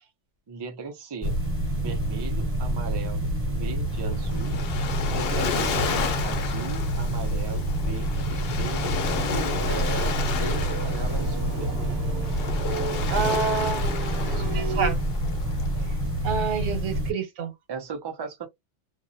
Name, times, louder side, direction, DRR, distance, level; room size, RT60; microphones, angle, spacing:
voice 1, 0.5-1.4 1.7-4.6 5.1-5.8 6.2-8.9 9.3-12.0 17.7-18.5, right 5 dB, 35° right, 0.4 m, -37 dB
sound 1, 1.2-17.1, right 1 dB, 10° right, 1.1 m, -27 dB
Waves surf, 3.9-16.3, left 6 dB, 60° left, 0.8 m, -33 dB
sound 2, 9.5-14.9, right 5 dB, 60° right, 1.0 m, -36 dB
voice 2, 13.1-13.9 14.3-15.0 16.2-17.5, right 5 dB, 85° right, 1.1 m, -28 dB
2.4 x 2.0 x 2.6 m
omnidirectional pair, 1.2 m